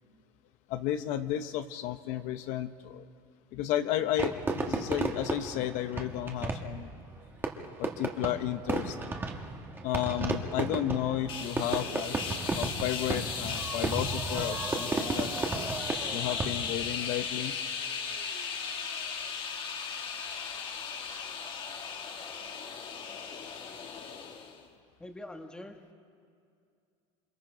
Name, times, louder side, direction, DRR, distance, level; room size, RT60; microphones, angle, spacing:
voice 1, 0.7-3.1 3.5-6.9 7.8-9.0 9.8-12.2 12.5-15.3 16.1-17.5, left 12 dB, 60° left, 9 dB, 0.8 m, -32 dB
Fireworks, 4.2-16.9, right 3 dB, 15° right, 1.4 m, -34 dB
Crowd, 11.1-19.6, right 9 dB, 60° right, 1.8 m, -53 dB
sound 1, 11.3-24.6, left 6 dB, 35° left, 1.6 m, -37 dB
voice 2, 25.0-25.9, left 1 dB, 5° left, 5 dB, 1.3 m, -44 dB
27.5 x 25.0 x 5.0 m, 2.3 s
cardioid pair, 155°, 14 cm